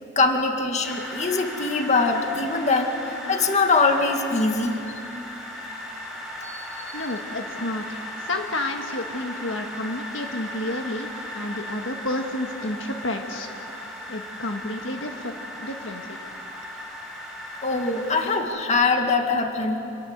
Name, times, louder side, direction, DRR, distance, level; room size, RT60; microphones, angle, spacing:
voice 1, 0.2-2.9 3.3-4.8 6.4-7.0 17.6-19.8, left 3 dB, 35° left, 4 dB, 2.0 m, -22 dB
sound 1, 0.8-18.4, left 1 dB, ahead, 6.1 m, -37 dB
voice 2, 6.9-11.1 11.4-13.5 14.1-16.2, left 1 dB, 70° left, 4 dB, 1.6 m, -30 dB
27.0 x 21.0 x 8.1 m, 2.8 s
head